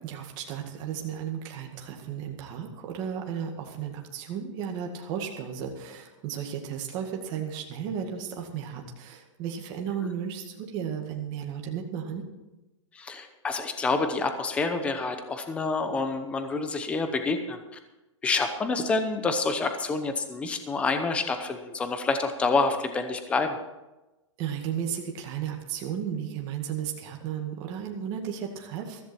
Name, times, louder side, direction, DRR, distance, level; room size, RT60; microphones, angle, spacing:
voice 1, 0.0-12.2 24.4-29.0, right 8 dB, 25° right, 2 dB, 2.0 m, -34 dB
voice 2, 12.9-17.6 18.2-23.6, left 3 dB, 5° left, 7 dB, 0.8 m, -28 dB
14.5 x 14.0 x 4.4 m, 1.0 s
supercardioid pair, 170°, 16 cm